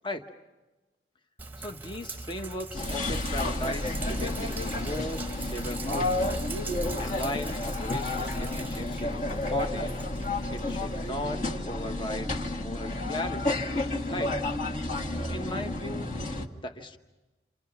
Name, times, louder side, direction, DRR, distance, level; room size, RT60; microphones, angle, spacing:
Sink (filling or washing), 1.4-11.1, right 2 dB, 10° right, 1.0 m, -40 dB
voice 1, 1.6-6.5 7.0-10.0 10.5-13.6 14.1-14.4 15.1-16.1 16.6-17.0, left 1 dB, 30° left, 5 dB, 1.1 m, -37 dB
sound 1, 2.7-16.4, left 2 dB, 45° left, 1.7 m, -31 dB
28.5 x 28.5 x 5.9 m, 1.1 s
head